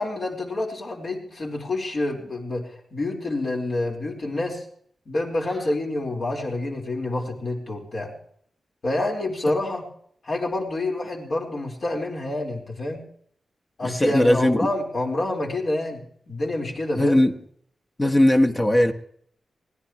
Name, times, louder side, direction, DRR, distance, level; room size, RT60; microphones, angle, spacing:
voice 1, 0.0-4.6 5.1-8.1 8.8-9.9 10.2-13.0 13.8-17.2, left 2 dB, 45° left, 4.4 m, -28 dB
voice 2, 13.8-14.6 16.9-17.3 18.0-18.9, left 1 dB, 15° left, 1.5 m, -18 dB
24.0 x 17.5 x 3.1 m
wide cardioid pair, 125°, 0 cm